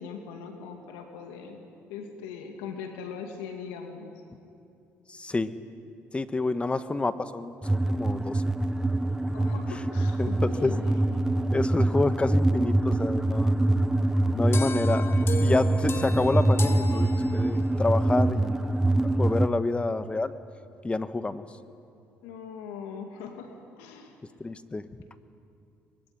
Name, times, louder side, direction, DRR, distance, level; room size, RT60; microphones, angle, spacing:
voice 1, 0.0-1.6 1.9-4.2 9.3-11.0 22.2-24.2, left 6 dB, 90° left, 4 dB, 2.5 m, -40 dB
voice 2, 5.1-5.5 6.1-8.4 10.2-10.7 11.5-13.5 14.3-15.0 15.4-18.6 19.2-20.3 20.8-21.4 24.4-24.8, left 3 dB, 20° left, 11 dB, 1.4 m, -28 dB
sound 1, 7.6-19.5, right 1 dB, 10° right, 0.9 m, -24 dB
sound 2, 14.5-17.8, left 5 dB, 45° left, 1.6 m, -37 dB
23.5 x 22.0 x 9.9 m, 2.6 s
supercardioid pair, 75°, 6 cm